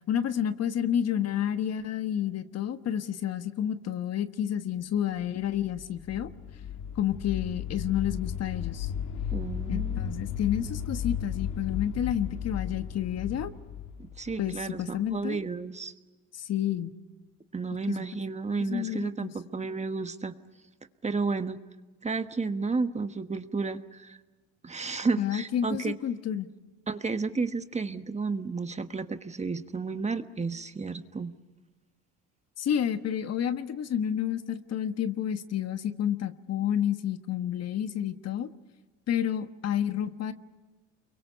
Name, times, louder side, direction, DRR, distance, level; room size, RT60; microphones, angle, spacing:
voice 1, 0.1-6.3 6.9-8.9 9.7-13.5 14.4-15.4 16.3-16.9 17.7-18.0 18.6-19.3 25.2-26.5 32.6-38.5 39.1-40.3, left 10 dB, 55° left, 10 dB, 1.4 m, -30 dB
sound 1, 5.3-15.2, left 8 dB, 70° left, 1.5 m, -35 dB
voice 2, 9.3-10.1 14.0-15.9 17.5-20.3 21.0-21.6 22.0-24.2 24.6-25.9 26.9-31.3, right 4 dB, 20° right, 9 dB, 1.3 m, -32 dB
29.0 x 23.5 x 6.9 m, 1.3 s
supercardioid pair, 85°, 31 cm